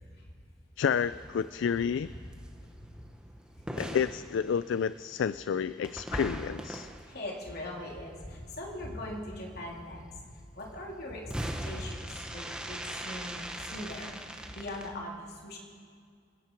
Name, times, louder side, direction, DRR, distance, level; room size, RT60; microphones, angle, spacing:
voice 1, 0.8-2.1 3.8-6.9, left 7 dB, 70° left, 15 dB, 0.3 m, -30 dB
sound 1, 0.9-8.4 11.3-14.9, right 1 dB, 5° right, 1.0 m, -41 dB
voice 2, 2.0-2.4 2.8-3.0 3.6-3.7 7.0-10.3 10.5-15.6, left 1 dB, 55° left, -1 dB, 3.0 m, -41 dB
27.5 x 10.5 x 4.5 m, 2.2 s
head